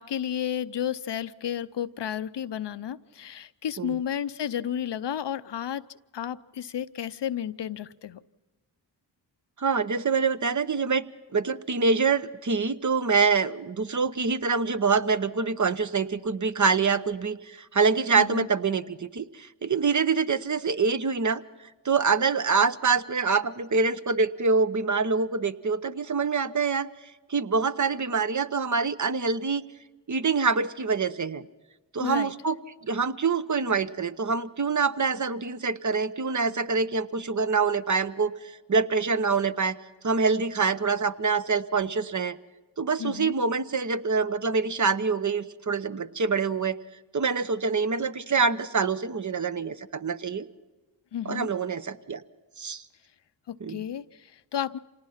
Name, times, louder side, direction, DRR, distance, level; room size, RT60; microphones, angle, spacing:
voice 1, 0.0-5.8 6.1-8.2 18.2-18.5 32.0-32.3 43.0-43.3 51.1-51.5 53.5-54.8, left 9 dB, 65° left, 14 dB, 0.7 m, -32 dB
voice 2, 9.6-11.0 11.3-21.4 21.8-26.9 27.3-29.6 30.1-31.4 31.9-32.6 32.8-38.3 38.7-39.8 40.0-42.4 42.8-46.8 47.1-50.5 51.2-52.2 52.6-52.8 53.6-53.8, right 5 dB, 40° right, 13 dB, 0.9 m, -25 dB
26.0 x 18.5 x 5.8 m, 1.2 s
cardioid pair, 40°, 46 cm